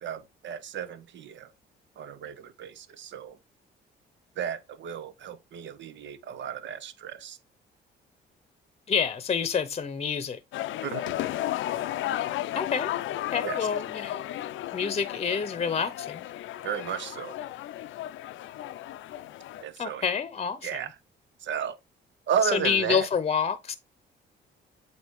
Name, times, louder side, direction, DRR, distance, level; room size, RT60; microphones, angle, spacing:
voice 1, 0.0-1.5 2.0-3.4 4.4-7.4 10.8-11.1 13.4-13.6 16.6-17.4 19.6-20.1 20.6-21.0 21.4-21.8 22.3-23.1, right 8 dB, 70° right, 0.8 m, -33 dB
voice 2, 8.9-10.4 12.5-12.9 13.3-14.3 14.7-16.2 19.8-20.8 22.5-23.7, left 6 dB, 30° left, 0.8 m, -28 dB
sound 1, 10.5-19.6, left 13 dB, 80° left, 0.5 m, -34 dB
8.0 x 2.8 x 4.6 m
cardioid pair, 90°, 20 cm